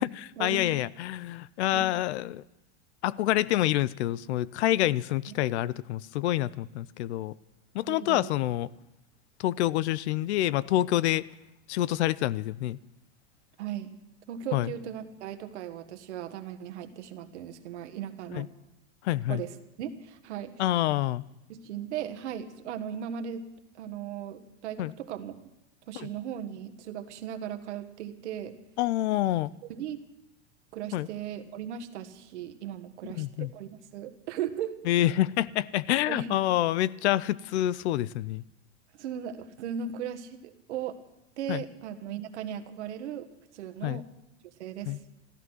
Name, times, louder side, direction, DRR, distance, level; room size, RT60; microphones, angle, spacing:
voice 1, 0.0-2.4 3.0-7.3 7.7-8.7 9.4-11.3 11.7-12.8 14.5-14.7 18.3-18.5 19.0-19.4 20.6-21.2 24.8-24.9 26.0-26.1 28.8-29.5 30.9-31.1 33.1-33.5 34.9-38.4 41.5-41.6 43.8-44.0 44.9-45.0, left 14 dB, 70° left, 22 dB, 0.6 m, -27 dB
voice 2, 7.8-8.3 13.6-13.9 14.3-18.5 19.3-19.5 19.8-20.6 21.5-23.4 23.7-25.3 25.9-28.6 29.7-30.0 30.7-34.8 36.1-36.4 38.9-41.0 41.4-43.3 43.5-44.0 44.6-45.0, right 9 dB, 75° right, 8 dB, 1.5 m, -37 dB
14.5 x 14.0 x 6.3 m, 0.92 s
supercardioid pair, 160°, 35 cm